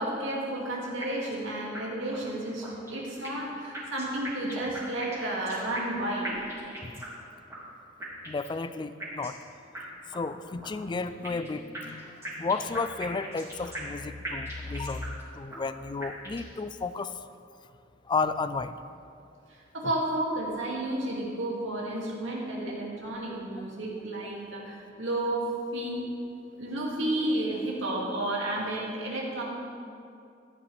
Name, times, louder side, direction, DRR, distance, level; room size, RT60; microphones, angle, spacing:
voice 1, 0.0-6.4 19.7-26.0 26.5-29.4, right 1 dB, 75° right, -4 dB, 2.5 m, -32 dB
sound 1, 1.0-1.4 1.7-1.8 2.1-2.2 2.6-3.5 3.7-6.0 6.2-7.2 7.5-7.6 8.0-8.5 9.0-9.4 9.7-9.8 10.1-10.2 10.6-11.5 11.7-14.0 14.2-15.2 15.5-15.6 16.0-16.5, right 1 dB, 15° right, 2.7 m, -39 dB
voice 2, 8.3-9.4 10.1-17.1 18.1-18.7, left 4 dB, 25° left, 12 dB, 0.3 m, -33 dB
14.5 x 9.8 x 3.4 m, 2.4 s
head